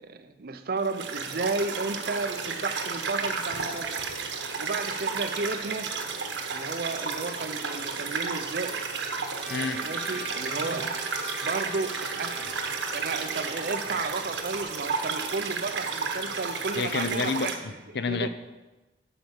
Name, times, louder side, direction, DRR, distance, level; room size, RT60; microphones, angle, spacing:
voice 1, 0.0-4.0 4.6-5.9 6.5-8.8 9.5-11.0 11.4-17.5 18.1-18.3, right 3 dB, 55° right, 7 dB, 0.6 m, -33 dB
sound 1, 0.8-17.6, right 5 dB, 90° right, 1.1 m, -32 dB
Trumpet, 9.4-14.1, left 1 dB, 5° right, 1.0 m, -42 dB
voice 2, 9.5-9.8 16.8-18.3, left 4 dB, 65° left, 11 dB, 0.6 m, -29 dB
11.0 x 4.7 x 7.0 m, 1.1 s
head